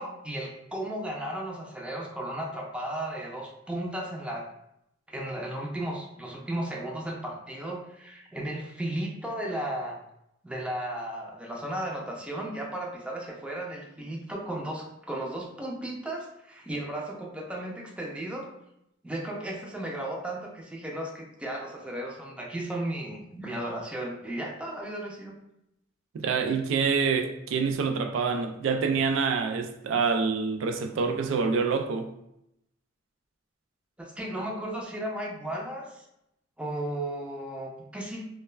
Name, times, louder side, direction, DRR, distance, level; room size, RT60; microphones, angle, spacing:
voice 1, 0.0-4.5 5.1-10.0 10.4-18.5 19.0-25.4 34.0-36.0 36.6-38.2, right 1 dB, 5° right, 0.4 m, -35 dB
voice 2, 26.1-32.1, right 5 dB, 80° right, 0.3 m, -26 dB
2.2 x 2.1 x 3.1 m
head